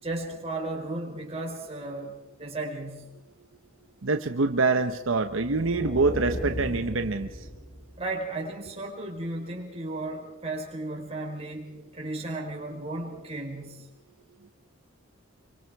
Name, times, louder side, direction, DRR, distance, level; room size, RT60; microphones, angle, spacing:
voice 1, 0.0-3.1 8.0-13.9, right 2 dB, 30° right, -1 dB, 4.3 m, -35 dB
voice 2, 4.0-7.3, right 3 dB, 75° right, 8 dB, 0.9 m, -25 dB
sound 1, 5.2-8.2, equal, 75° left, 6.7 m, -36 dB
26.5 x 24.0 x 4.7 m, 1.1 s
head